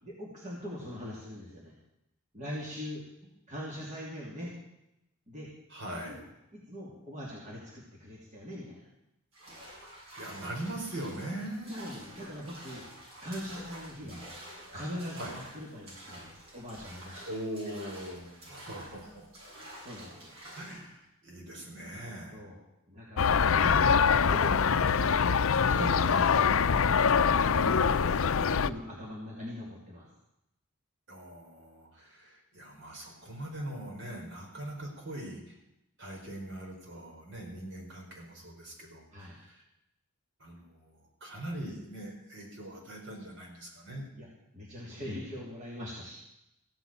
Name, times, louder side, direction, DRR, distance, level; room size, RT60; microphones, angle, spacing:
voice 1, 0.0-1.7 2.3-3.0 3.5-4.5 5.3-5.5 6.1-6.2 6.5-8.9 11.6-12.8 13.2-14.3 14.7-17.2 18.8-18.9 19.8-20.3 22.3-22.6 22.9-23.9 24.2-25.2 25.7-27.1 27.4-30.1 39.1-39.3 44.1-44.3 44.5-46.1, equal, 35° right, -4 dB, 2.9 m, -41 dB
voice 2, 5.7-6.2 10.2-11.7 14.0-14.3 15.2-15.4 17.2-19.3 20.5-22.4 26.1-26.3 27.5-28.0 31.1-35.6 36.0-39.6 40.4-44.1, right 1 dB, 55° right, 0 dB, 4.7 m, -41 dB
sound 1, 9.3-20.9, right 1 dB, 70° right, 7.5 m, -48 dB
sound 2, 23.2-28.7, left 6 dB, 65° left, 0.5 m, -24 dB
15.5 x 8.0 x 9.0 m, 0.85 s
head